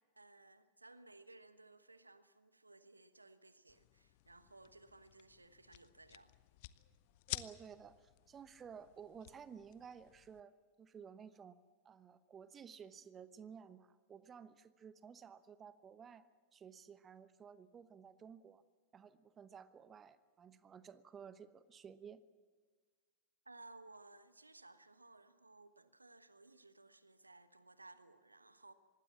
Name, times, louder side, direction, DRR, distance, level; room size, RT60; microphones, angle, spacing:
voice 1, 0.1-6.3 23.4-28.7, right 2 dB, 80° right, 1.2 m, -60 dB
sound 1, 3.7-10.4, left 18 dB, 50° left, 0.9 m, -52 dB
voice 2, 7.3-10.5 10.8-11.6 11.8-18.6 18.9-22.2, right 7 dB, 25° right, 1.0 m, -55 dB
25.0 x 20.0 x 7.4 m
figure-of-eight pair, 90°, 0 cm